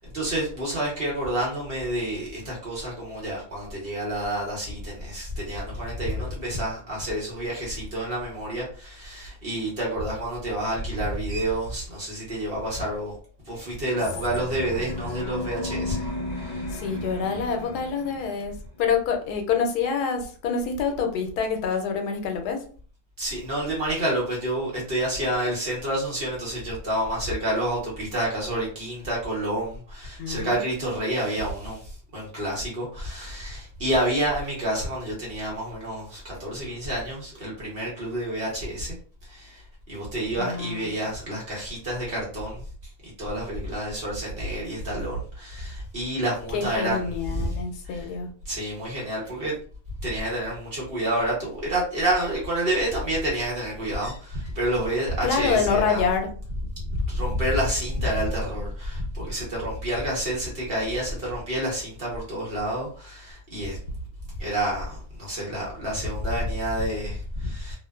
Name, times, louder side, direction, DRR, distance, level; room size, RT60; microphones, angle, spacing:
voice 1, 0.1-13.2 13.4-16.1 16.4-16.7 23.2-31.8 32.1-38.9 39.3-42.6 43.2-47.6 47.9-48.1 48.5-49.5 50.0-56.0 56.9-63.8 64.4-67.8, right 1 dB, 45° right, 0.9 m, -29 dB
sound 1, 13.9-18.6, left 2 dB, 45° left, 1.3 m, -34 dB
voice 2, 16.7-18.5 18.8-22.6 30.2-30.9 40.4-41.0 46.5-48.3 55.2-56.3, left 6 dB, 85° left, 1.2 m, -26 dB
2.8 x 2.1 x 2.3 m
omnidirectional pair, 1.7 m